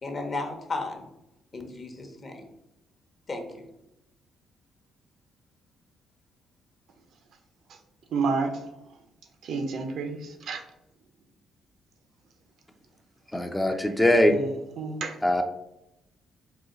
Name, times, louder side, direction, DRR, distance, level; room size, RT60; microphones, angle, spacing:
voice 1, 0.0-1.0 1.5-2.5 3.3-3.6, left 3 dB, 40° left, 0.8 m, -34 dB
voice 2, 8.1-8.6 9.4-10.6 14.3-14.5 14.8-15.1, right 4 dB, 70° right, 0.6 m, -29 dB
voice 3, 13.3-14.4 15.2-15.4, left 1 dB, 10° left, 0.4 m, -21 dB
3.9 x 2.3 x 3.8 m
cardioid pair, 90°, 0 cm